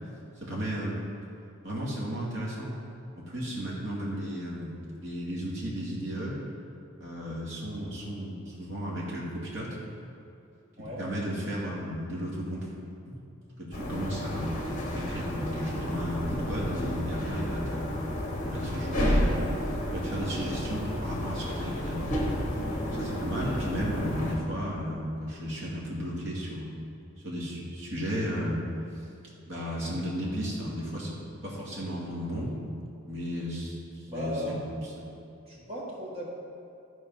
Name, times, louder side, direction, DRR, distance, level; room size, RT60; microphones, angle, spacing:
voice 1, 0.4-1.0 1.6-2.8 3.3-6.4 7.0-9.8 11.0-12.7 13.0-13.2 13.6-14.6 14.9-17.9 18.4-19.4 19.9-22.1 22.8-26.8 27.2-28.6 29.5-32.6 33.0-34.6, equal, 55° right, -6 dB, 2.4 m, -34 dB
sound 1, 13.7-24.4, equal, 35° left, 1.3 m, -31 dB
voice 2, 34.1-34.6 35.1-35.2 35.5-36.3, equal, 25° right, -5 dB, 1.6 m, -36 dB
12.5 x 4.6 x 5.6 m, 2.8 s
head